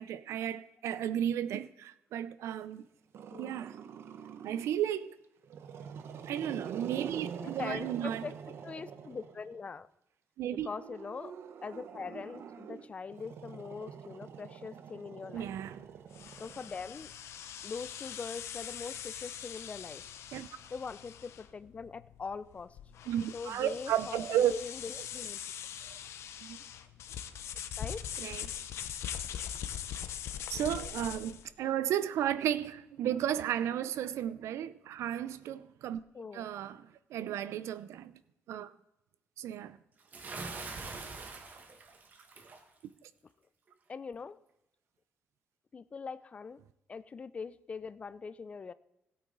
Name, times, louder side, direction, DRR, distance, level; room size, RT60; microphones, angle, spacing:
voice 1, 0.0-2.9 3.4-3.7 4.4-5.2 6.3-8.2 10.4-10.7 15.3-15.9 20.3-20.5 23.1-24.5 26.4-26.6 28.2-28.5 30.5-36.0 36.3-38.2 38.5-38.7 39.4-39.8 42.8-43.1, right 10 dB, 90° right, 0.6 m, -33 dB
Growling, 3.1-4.9 5.4-9.6 10.6-17.1, right 7 dB, 60° right, 0.9 m, -45 dB
voice 2, 7.4-8.4 8.6-9.9 10.5-11.3 11.6-15.5 16.4-17.1 17.6-20.0 20.7-22.8 23.3-25.4 27.8-28.1 36.1-36.5 43.9-44.4 45.7-46.6 46.9-48.7, left 5 dB, 30° left, 0.4 m, -42 dB
sound 1, 16.1-31.5, left 9 dB, 75° left, 0.8 m, -42 dB
Bathtub (filling or washing) / Splash splatter, 40.1-42.6, right 3 dB, 40° right, 1.4 m, -43 dB
16.5 x 8.8 x 4.0 m
cardioid pair, 145°, 5 cm